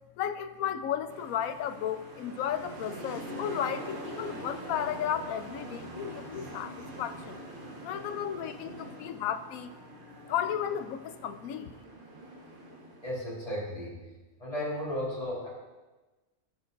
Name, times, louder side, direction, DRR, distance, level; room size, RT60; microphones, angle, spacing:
voice 1, 0.2-7.4 7.8-9.7 10.3-11.7, left 9 dB, 75° left, 10 dB, 1.0 m, -34 dB
sound 1, 1.1-13.1, right 1 dB, 40° right, 1.0 m, -44 dB
voice 2, 13.0-14.0 14.4-15.5, equal, 25° left, -7 dB, 2.6 m, -34 dB
13.0 x 6.7 x 2.6 m, 1.2 s
omnidirectional pair, 1.5 m